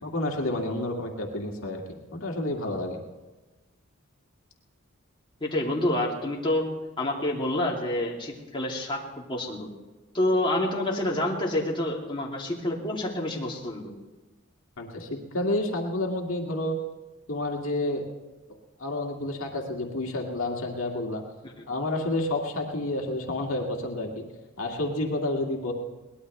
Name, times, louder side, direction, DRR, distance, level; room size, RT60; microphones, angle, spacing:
voice 1, 0.0-3.0 14.8-16.8 17.3-18.0 18.8-21.2 21.7-24.2 24.6-25.7, left 1 dB, 70° left, 0 dB, 2.1 m, -30 dB
voice 2, 5.4-6.7 7.0-9.7 10.1-13.9, left 1 dB, 25° left, -3 dB, 2.7 m, -28 dB
22.5 x 19.0 x 3.3 m, 1.2 s
head